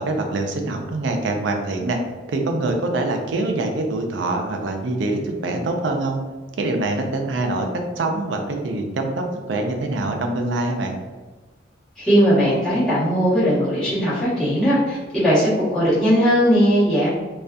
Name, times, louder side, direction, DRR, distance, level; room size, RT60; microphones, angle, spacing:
voice 1, 0.0-2.0 2.3-6.2 6.6-7.7 8.0-10.9, right 2 dB, 65° right, 3 dB, 0.4 m, -24 dB
voice 2, 12.0-17.1, equal, 5° left, -13 dB, 1.1 m, -18 dB
2.6 x 2.3 x 2.2 m, 1.3 s
head